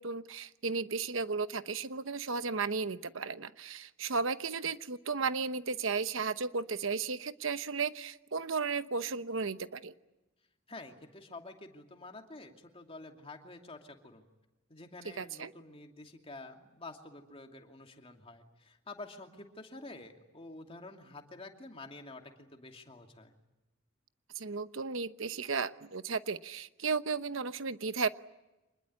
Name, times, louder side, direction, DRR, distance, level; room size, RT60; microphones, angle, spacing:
voice 1, 0.0-9.9 15.2-15.5 24.3-28.1, right 4 dB, 75° right, 12 dB, 1.0 m, -34 dB
voice 2, 10.7-14.2 14.7-23.3, left 2 dB, 30° left, 4 dB, 2.6 m, -49 dB
26.0 x 20.5 x 9.7 m, 1.0 s
head